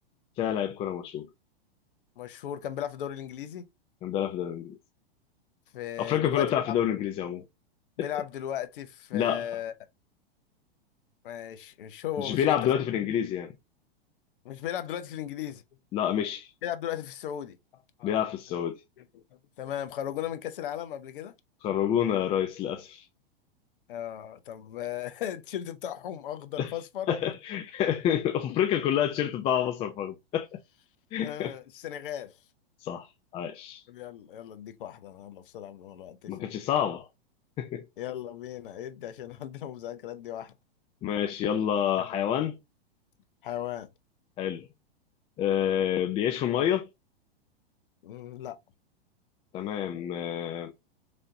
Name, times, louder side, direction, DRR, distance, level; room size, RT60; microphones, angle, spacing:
voice 1, 0.4-1.3 4.0-4.8 6.0-7.4 9.1-9.5 12.2-13.5 15.9-16.5 18.0-18.8 21.6-23.0 26.6-26.7 27.1-30.5 31.1-31.5 32.8-33.1 33.3-33.8 36.3-37.1 37.6-37.9 41.0-42.6 44.4-44.7 45.4-46.9 49.5-50.7, left 10 dB, 20° left, 0.4 m, -28 dB
voice 2, 2.2-3.6 5.7-6.6 8.0-9.7 11.2-12.9 14.4-15.6 16.6-18.2 19.0-19.2 19.6-21.3 23.9-27.1 31.2-32.4 33.9-36.5 38.0-40.5 42.0-42.1 43.4-43.9 48.0-48.6, left 10 dB, 60° left, 0.7 m, -37 dB
3.9 x 3.4 x 2.6 m
figure-of-eight pair, 105°, 30 cm